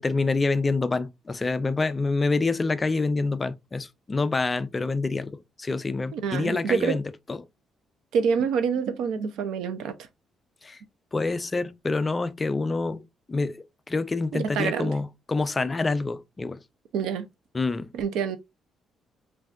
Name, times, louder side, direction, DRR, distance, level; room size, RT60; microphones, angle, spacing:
voice 1, 0.0-7.4 10.6-10.8 11.1-16.6 17.5-17.9, left 3 dB, 20° left, 0.3 m, -27 dB
voice 2, 6.1-7.0 8.1-9.9 14.3-14.9 16.9-17.3 17.9-18.4, right 6 dB, 90° right, 0.6 m, -26 dB
5.6 x 2.5 x 2.5 m
cardioid pair, 155°, 0 cm